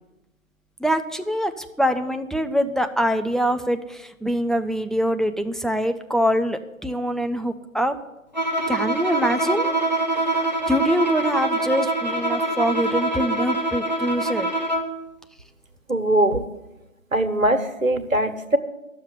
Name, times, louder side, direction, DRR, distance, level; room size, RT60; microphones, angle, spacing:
voice 1, 0.8-7.9 8.7-9.8 10.3-14.5, equal, ahead, 7 dB, 0.4 m, -24 dB
Bowed string instrument, 8.3-15.0, right 1 dB, 30° left, 1.1 m, -24 dB
voice 2, 15.9-16.4 17.1-18.6, right 1 dB, 70° right, 8 dB, 1.6 m, -21 dB
12.5 x 7.2 x 9.8 m, 0.93 s
figure-of-eight pair, 170°, 42 cm